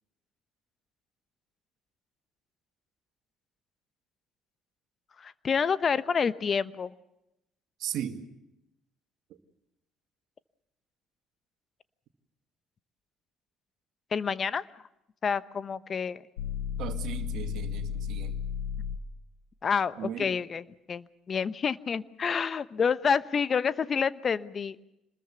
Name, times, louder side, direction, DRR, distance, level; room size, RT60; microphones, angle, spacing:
voice 1, 5.2-6.9 14.1-14.6 15.2-16.2 19.6-24.8, left 6 dB, 40° left, 15 dB, 1.0 m, -28 dB
voice 2, 7.8-8.2 16.8-18.3 20.0-20.3, right 10 dB, 65° right, 7 dB, 2.2 m, -36 dB
sound 1, 16.4-19.2, left 7 dB, 85° left, 1.1 m, -33 dB
27.0 x 21.0 x 7.0 m, 0.86 s
hypercardioid pair, 55°, 0 cm